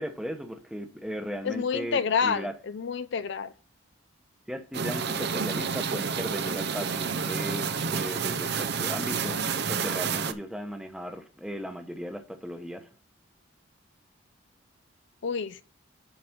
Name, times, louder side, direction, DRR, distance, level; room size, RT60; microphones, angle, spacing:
voice 1, 0.0-2.6 4.5-12.9, equal, 5° right, 0.9 m, -37 dB
voice 2, 1.4-2.5 2.7-3.5 15.2-15.6, left 6 dB, 60° left, 0.4 m, -28 dB
sound 1, 4.7-10.3, right 5 dB, 55° right, 0.6 m, -29 dB
7.9 x 5.0 x 5.8 m
head